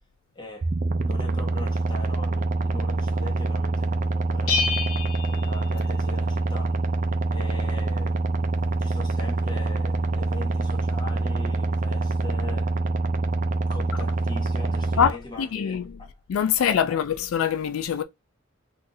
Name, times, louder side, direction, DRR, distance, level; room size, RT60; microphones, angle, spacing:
voice 1, 0.3-0.7 1.0-4.7 5.3-6.8 7.3-8.4 8.8-12.8 13.7-16.1 16.9-17.0, left 2 dB, 20° left, 1.2 m, -41 dB
sound 1, 0.6-15.1, right 2 dB, 40° right, 0.4 m, -25 dB
Bell, 4.5-6.3, left 4 dB, 65° left, 0.8 m, -29 dB
voice 2, 15.0-15.8 16.3-18.0, left 8 dB, 85° left, 0.3 m, -24 dB
2.7 x 2.5 x 3.8 m
head